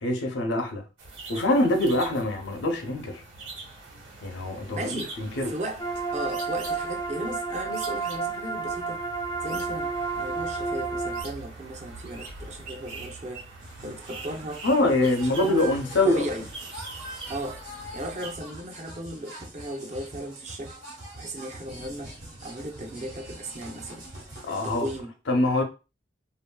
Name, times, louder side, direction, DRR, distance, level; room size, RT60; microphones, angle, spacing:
voice 1, 0.0-0.8 1.3-3.2 4.2-5.5 14.6-16.3 24.4-24.9 25.3-25.6, left 1 dB, 75° left, 0.6 m, -24 dB
sound 1, 1.0-18.4, right 3 dB, 90° right, 1.2 m, -43 dB
voice 2, 4.7-5.1 5.4-5.9 6.1-9.0 9.4-13.5 13.8-14.7 15.0-15.1 15.4-15.7 16.0-16.5 17.3-17.7 17.9-20.8 21.2-22.1 22.4-24.0 24.5-25.1, right 1 dB, 40° right, 0.5 m, -36 dB
sound 2, 5.8-11.2, right 4 dB, 20° left, 0.3 m, -31 dB
sound 3, 13.6-25.0, right 1 dB, 65° right, 1.1 m, -43 dB
2.9 x 2.6 x 2.2 m
head